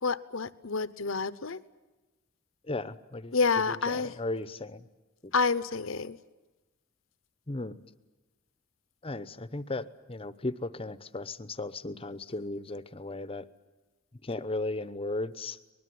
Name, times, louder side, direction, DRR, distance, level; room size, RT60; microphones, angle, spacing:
voice 1, 0.0-1.6 3.3-4.1 5.3-6.2, left 4 dB, 65° left, 16 dB, 0.9 m, -28 dB
voice 2, 2.6-3.4 3.7-4.9 5.2-5.3 7.5-7.8 9.0-13.4 14.2-15.7, left 2 dB, 25° left, 14 dB, 0.9 m, -36 dB
24.5 x 20.5 x 9.5 m, 1.1 s
head